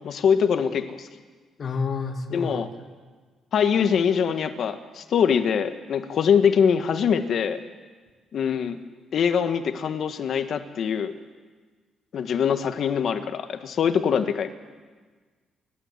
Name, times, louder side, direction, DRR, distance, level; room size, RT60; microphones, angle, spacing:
voice 1, 0.0-1.1 2.3-2.7 3.5-7.6 8.3-8.8 9.1-11.1 12.1-14.5, left 7 dB, 60° left, 8 dB, 1.6 m, -23 dB
voice 2, 1.6-2.8, left 4 dB, 45° left, 4 dB, 2.5 m, -30 dB
29.5 x 12.5 x 8.3 m, 1.4 s
cardioid pair, 90°, 0 cm